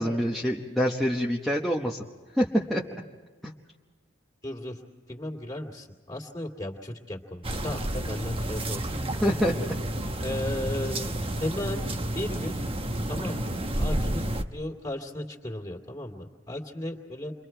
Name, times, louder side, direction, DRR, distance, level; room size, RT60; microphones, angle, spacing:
voice 1, 0.0-2.0 2.4-2.8 8.9-9.5, equal, ahead, -4 dB, 1.0 m, -26 dB
voice 2, 4.4-4.8 5.1-8.8 10.2-11.9 12.1-12.6 13.1-17.3, left 1 dB, 20° left, 1 dB, 2.4 m, -35 dB
sound 1, 7.4-14.4, right 1 dB, 30° right, 1.0 m, -30 dB
29.0 x 24.0 x 4.5 m, 1.5 s
head